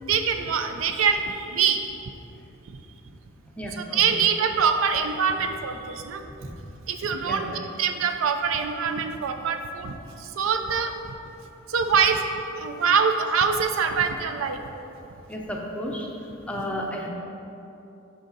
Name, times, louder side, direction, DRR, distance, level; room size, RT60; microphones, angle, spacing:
voice 1, 0.1-1.9 2.7-2.8 3.7-6.3 6.9-10.9 11.7-12.2 12.6-14.6 16.6-16.7, right 6 dB, 75° right, 7 dB, 0.4 m, -24 dB
voice 2, 3.6-4.0 6.4-6.5 7.3-7.4 15.3-16.1 16.5-17.1, equal, 5° left, -1 dB, 0.6 m, -32 dB
6.4 x 4.9 x 3.9 m, 2.9 s
head